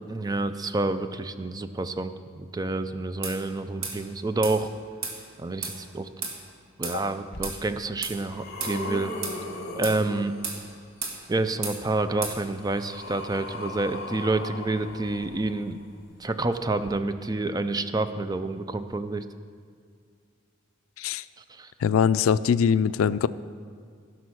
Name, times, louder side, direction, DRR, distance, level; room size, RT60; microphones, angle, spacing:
voice 1, 0.1-4.7 5.4-6.1 6.8-9.2 9.7-10.4 11.3-15.8 16.2-19.2 21.6-21.7, right 2 dB, 20° right, 10 dB, 0.4 m, -28 dB
sound 1, 3.2-3.4 3.8-4.0 4.4-4.6 5.0-5.2 5.6-5.8 6.2-6.4 6.8-7.0 7.4-7.6 8.0-8.2 8.6-8.8 9.2-9.4 9.8-10.0 10.4-10.6 11.0-11.2 11.6-11.8 12.2-12.4, right 4 dB, 80° right, 1.8 m, -32 dB
sound 2, 7.3-7.4 8.0-10.7 11.9-15.8 16.8-16.9, left 2 dB, 55° left, 1.6 m, -38 dB
voice 2, 21.8-23.3, left 7 dB, 85° left, 16 dB, 0.3 m, -22 dB
15.5 x 6.1 x 6.3 m, 2.1 s
head